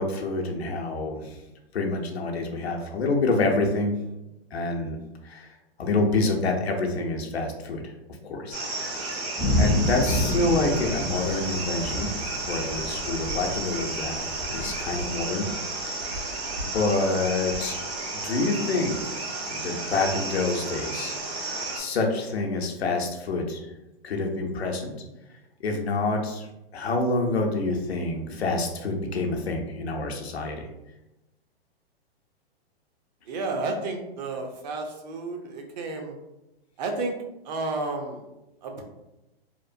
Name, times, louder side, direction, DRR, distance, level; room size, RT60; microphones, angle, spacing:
voice 1, 0.0-1.4 1.7-3.9 4.5-5.0 5.2-7.9 8.2-9.3 9.6-12.1 12.5-15.5 15.8-16.0 16.6-17.8 18.2-19.0 19.5-21.2 21.7-23.7 24.0-24.9 25.6-30.7, left 3 dB, 90° left, 2 dB, 0.6 m, -27 dB
sound 1, 8.5-21.8, right 2 dB, 75° right, 1.0 m, -32 dB
Thunder / Rain, 9.4-15.1, left 1 dB, 10° left, 0.5 m, -29 dB
voice 2, 33.3-36.1 36.8-37.2 37.4-38.2 38.6-38.8, right 3 dB, 45° right, 3 dB, 0.6 m, -31 dB
2.9 x 2.1 x 2.5 m, 0.94 s
hypercardioid pair, 125°, 31 cm